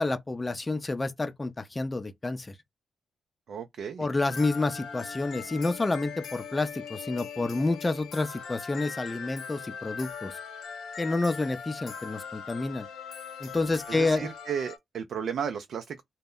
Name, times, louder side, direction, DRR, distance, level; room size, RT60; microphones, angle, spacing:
voice 1, 0.0-2.5 4.0-10.3 11.0-12.9 13.4-14.3, left 3 dB, 25° left, 0.5 m, -29 dB
voice 2, 3.5-4.1 13.9-16.0, right 7 dB, 70° right, 0.3 m, -34 dB
Mysterious World - Glittering Crystals, 4.3-14.8, left 6 dB, 75° left, 0.5 m, -40 dB
2.1 x 2.0 x 3.6 m
supercardioid pair, 60°, 0 cm